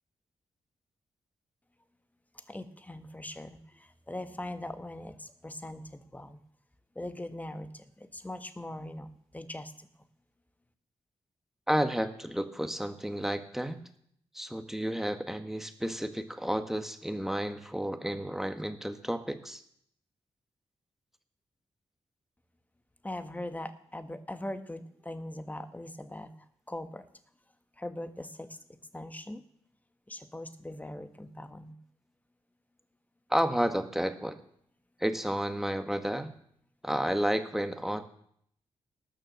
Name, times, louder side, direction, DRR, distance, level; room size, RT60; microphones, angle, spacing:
voice 1, 2.3-6.4 6.9-9.9 23.0-27.1 27.8-28.6 28.9-29.4 30.1-31.8, left 1 dB, 15° left, 10 dB, 1.4 m, -41 dB
voice 2, 11.7-13.8 14.3-19.6 33.3-34.4 35.0-36.3 36.8-38.1, equal, 5° right, 8 dB, 1.5 m, -31 dB
19.0 x 6.5 x 6.5 m, 0.68 s
cardioid pair, 55°, 11 cm